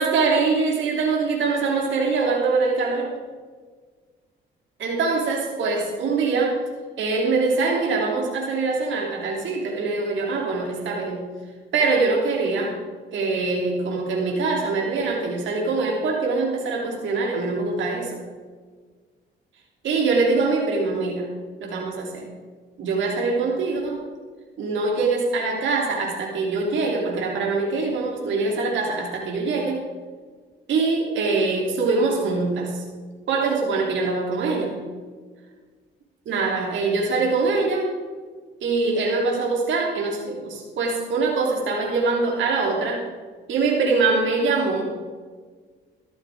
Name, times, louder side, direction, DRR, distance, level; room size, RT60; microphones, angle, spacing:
voice 1, 0.0-3.2 4.8-6.6 7.0-11.2 11.7-12.8 13.1-18.2 19.8-21.3 21.6-22.3 22.8-24.1 24.6-29.9 30.7-32.8 33.3-34.8 36.2-37.9 38.6-43.0 43.5-44.9, right 3 dB, 75° right, -1 dB, 3.3 m, -23 dB
14.0 x 13.5 x 3.7 m, 1.5 s
cardioid pair, 90°, 20 cm